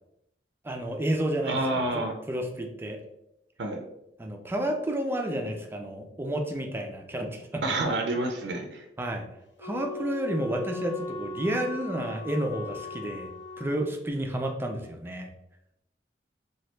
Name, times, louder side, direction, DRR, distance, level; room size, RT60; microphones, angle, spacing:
voice 1, 0.6-1.9 2.3-3.0 4.2-7.6 9.0-9.3 9.6-13.3 13.6-15.3, right 1 dB, 15° right, 3 dB, 0.3 m, -30 dB
voice 2, 1.4-2.2 3.6-3.8 7.6-8.8, right 2 dB, 75° right, 3 dB, 0.5 m, -28 dB
Wind instrument woodwind instrument, 9.6-13.9, left 3 dB, 75° left, 0.7 m, -39 dB
2.9 x 2.3 x 3.1 m, 0.83 s
head